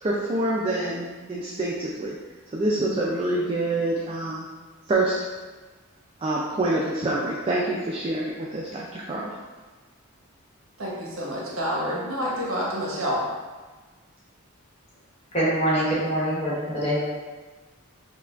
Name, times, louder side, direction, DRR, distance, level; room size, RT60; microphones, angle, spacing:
voice 1, 0.0-2.2 2.5-4.4 4.9-5.1 6.2-9.4, right 2 dB, 25° right, -4 dB, 0.3 m, -26 dB
voice 2, 10.8-13.2, equal, 70° right, -4 dB, 0.9 m, -28 dB
voice 3, 15.3-17.1, right 1 dB, 30° left, -8 dB, 1.1 m, -24 dB
5.5 x 2.2 x 2.4 m, 1.3 s
head